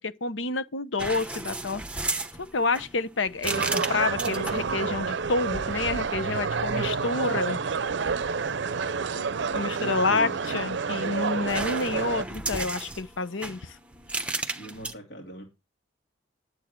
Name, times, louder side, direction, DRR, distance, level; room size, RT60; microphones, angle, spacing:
voice 1, 0.0-1.8 2.4-7.6 9.1-9.3 9.5-13.8, left 3 dB, 85° left, 0.9 m, -29 dB
sound 1, 1.0-4.7 5.6-6.1 10.2-11.0 11.5-14.9, right 2 dB, 5° right, 0.9 m, -34 dB
sound 2, 3.4-12.3, right 5 dB, 70° right, 0.5 m, -29 dB
voice 2, 9.8-10.4 14.5-15.5, right 2 dB, 65° left, 3.1 m, -41 dB
11.0 x 8.0 x 4.5 m
head